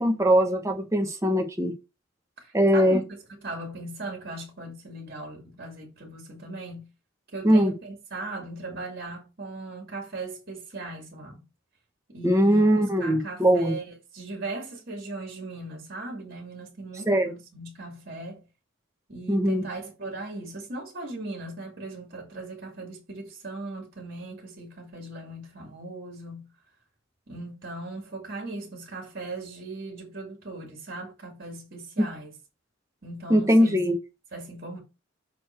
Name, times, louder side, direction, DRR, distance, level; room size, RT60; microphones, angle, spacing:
voice 1, 0.0-1.7 2.5-3.0 7.4-7.7 12.2-13.7 17.1-17.3 19.3-19.6 33.3-33.9, equal, 15° right, 1.1 m, -21 dB
voice 2, 2.4-3.0 3.3-6.9 7.3-11.4 12.1-12.6 13.0-18.5 19.1-26.5 27.3-32.3 33.0-33.8 34.3-34.8, right 2 dB, 50° right, 2.3 m, -38 dB
6.5 x 4.2 x 4.4 m
head